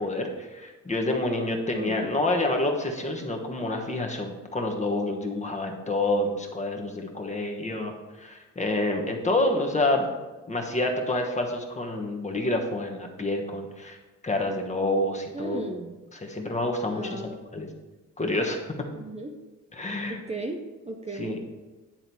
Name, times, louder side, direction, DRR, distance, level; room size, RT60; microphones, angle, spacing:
voice 1, 0.0-7.9 8.2-10.1 10.5-14.0 14.2-15.6 16.2-17.7 18.2-18.6 19.8-20.2 21.2-21.4, left 2 dB, 25° left, 3 dB, 1.2 m, -28 dB
voice 2, 1.7-2.1 15.3-15.9 16.9-17.4 18.9-19.4 20.1-21.4, right 2 dB, 20° right, 3 dB, 0.6 m, -35 dB
10.0 x 3.9 x 4.5 m, 1.2 s
cardioid pair, 90°, 30 cm